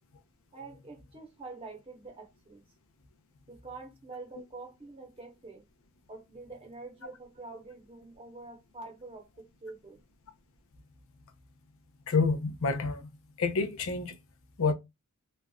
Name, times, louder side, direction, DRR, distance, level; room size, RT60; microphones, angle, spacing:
voice 1, 0.5-2.6 3.5-5.6 6.1-10.0, right 3 dB, 25° right, 0.9 m, -46 dB
voice 2, 12.1-13.1 13.4-14.1 14.6-14.7, left 4 dB, 60° left, 0.5 m, -28 dB
3.1 x 2.4 x 2.2 m
head